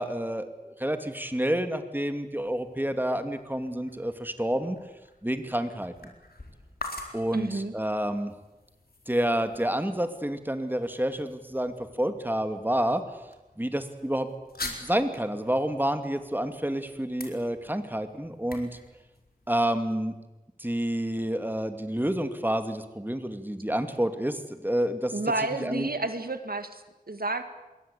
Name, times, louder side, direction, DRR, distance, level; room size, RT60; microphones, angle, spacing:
voice 1, 0.0-4.8 5.2-6.1 7.1-8.3 9.1-13.0 13.6-14.3 14.6-18.7 19.5-20.1 20.6-25.1 25.6-25.9, right 1 dB, 15° right, 8 dB, 2.5 m, -29 dB
sound 1, 2.1-20.0, left 2 dB, 85° left, 4.4 m, -46 dB
voice 2, 7.3-7.7 25.1-26.8 27.1-27.4, right 2 dB, 80° right, 9 dB, 2.0 m, -30 dB
27.5 x 21.5 x 8.5 m, 1.0 s
wide cardioid pair, 45°, 15 cm